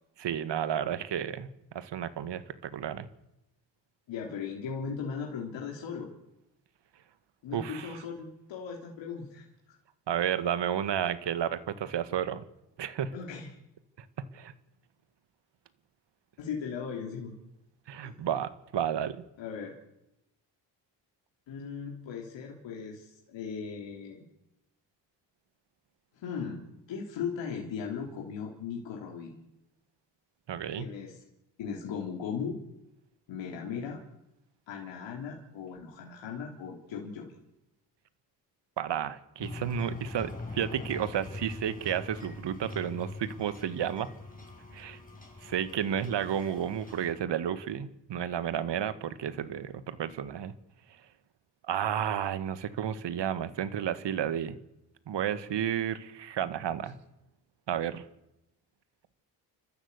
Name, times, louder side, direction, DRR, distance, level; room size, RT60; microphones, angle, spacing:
voice 1, 0.2-1.5 1.7-3.1 7.5-8.0 10.1-12.4 12.8-13.1 14.2-14.5 17.9-19.2 30.5-30.9 38.8-44.1 44.7-45.0 45.4-50.5 51.7-54.6 55.1-57.0 57.7-58.0, right 9 dB, 65° right, 13 dB, 1.8 m, -32 dB
voice 2, 4.1-6.1 7.4-9.8 13.1-13.5 16.4-17.3 18.0-18.2 19.4-19.8 21.5-24.2 26.2-26.6 26.9-29.4 30.8-31.2 31.6-32.6 33.3-34.0 34.7-37.4, left 6 dB, 75° left, -1 dB, 3.7 m, -38 dB
sound 1, 39.4-47.1, left 2 dB, 15° left, 7.6 m, -43 dB
29.5 x 13.0 x 8.3 m, 0.90 s
supercardioid pair, 50°, 46 cm